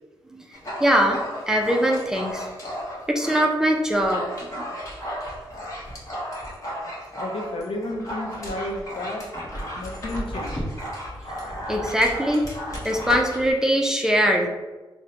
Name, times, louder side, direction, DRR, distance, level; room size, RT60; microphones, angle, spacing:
Dog, 0.5-3.5 3.8-13.5, equal, 40° left, 1.0 m, -34 dB
voice 1, 0.8-1.2 1.5-2.5 3.1-4.2 4.6-4.7 11.7-12.5 12.8-14.5, equal, 5° right, 1 dB, 0.4 m, -21 dB
voice 2, 7.2-9.2 9.8-10.7, left 1 dB, 85° left, 1 dB, 0.6 m, -32 dB
4.8 x 2.1 x 2.9 m, 1.2 s
wide cardioid pair, 120°, 9 cm